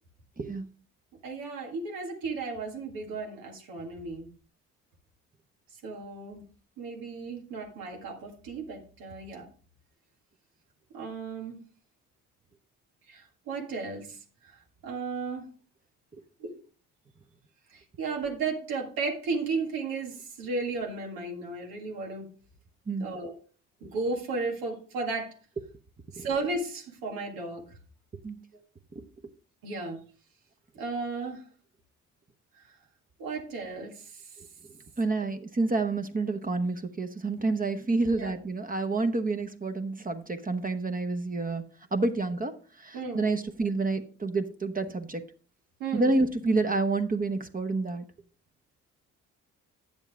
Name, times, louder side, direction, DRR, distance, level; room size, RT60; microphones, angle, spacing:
voice 1, 1.2-4.3 5.8-6.4 6.8-9.5 10.9-11.6 13.1-15.5 16.4-16.5 17.7-22.3 23.0-23.3 23.8-25.4 26.1-27.8 29.6-30.0 30.8-31.5 33.2-34.4 38.1-38.3 42.9-43.3 45.8-46.1, right 3 dB, 80° right, 1.9 m, -34 dB
voice 2, 35.0-41.6 41.9-45.2 45.9-48.0, right 3 dB, 25° right, 1.0 m, -29 dB
8.9 x 7.2 x 3.5 m
supercardioid pair, 60°, 34 cm